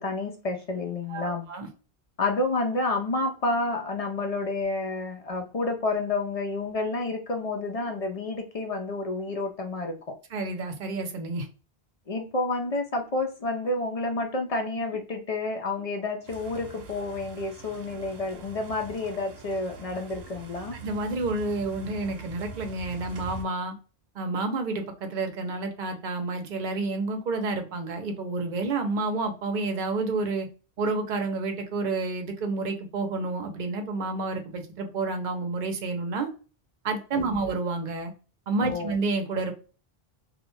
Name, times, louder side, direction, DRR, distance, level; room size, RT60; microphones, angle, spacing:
voice 1, 0.0-1.5 2.2-10.2 12.1-20.8 37.1-37.3 38.6-38.9, left 2 dB, 50° left, 0.5 m, -30 dB
voice 2, 1.1-1.7 10.3-11.5 20.8-23.7 24.1-30.5 30.8-36.3 36.8-38.1 38.5-39.5, right 3 dB, 55° right, 0.7 m, -29 dB
sound 1, 16.3-23.4, right 3 dB, 80° right, 0.9 m, -43 dB
2.4 x 2.1 x 3.0 m
omnidirectional pair, 1.1 m